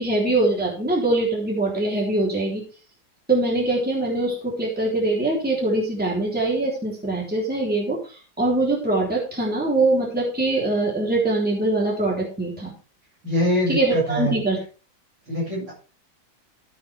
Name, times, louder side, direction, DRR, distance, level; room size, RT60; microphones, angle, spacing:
voice 1, 0.0-2.6 3.3-12.7 13.7-14.6, right 2 dB, 5° right, -3 dB, 3.4 m, -23 dB
voice 2, 13.2-14.4 15.3-15.7, equal, 60° right, -4 dB, 7.4 m, -23 dB
13.5 x 8.5 x 3.5 m, 0.35 s
omnidirectional pair, 2.2 m